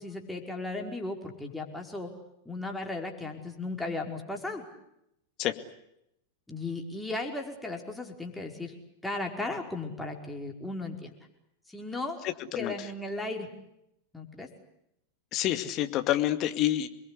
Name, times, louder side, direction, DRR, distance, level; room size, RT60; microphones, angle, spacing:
voice 1, 0.0-2.1 2.4-4.6 6.5-8.7 9.0-11.1 11.7-12.2 12.5-13.5 14.1-14.5, left 2 dB, 5° left, 1 dB, 5.1 m, -36 dB
voice 2, 15.3-16.9, left 13 dB, 35° left, 8 dB, 2.3 m, -27 dB
28.5 x 22.0 x 8.4 m, 0.80 s
figure-of-eight pair, 90°, 0 cm